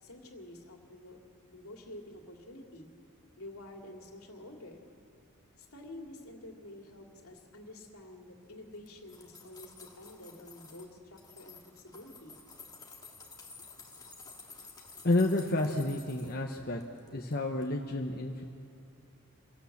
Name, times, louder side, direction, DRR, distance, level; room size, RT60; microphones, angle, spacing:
voice 1, 0.0-1.2 1.5-2.9 3.4-4.8 5.6-12.4, left 1 dB, 75° left, 2 dB, 2.6 m, -49 dB
sound 1, 8.7-10.9 11.2-16.4 16.8-17.4 17.6-17.7, left 4 dB, 20° left, 1.9 m, -52 dB
voice 2, 15.0-16.8 17.1-18.4, left 2 dB, 45° left, 1 dB, 1.1 m, -30 dB
26.0 x 18.0 x 7.3 m, 2.5 s
head